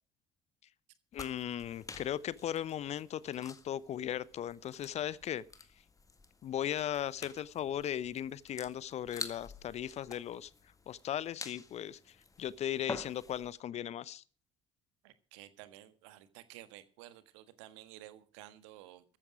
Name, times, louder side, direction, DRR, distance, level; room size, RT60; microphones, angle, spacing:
voice 1, 1.1-5.4 6.4-10.5 10.9-14.2, left 10 dB, 45° left, 0.8 m, -37 dB
sound 1, 1.1-13.5, left 4 dB, 20° left, 1.8 m, -49 dB
voice 2, 15.0-19.0, right 14 dB, 65° right, 1.5 m, -53 dB
14.0 x 12.0 x 4.9 m
figure-of-eight pair, 55°, 16 cm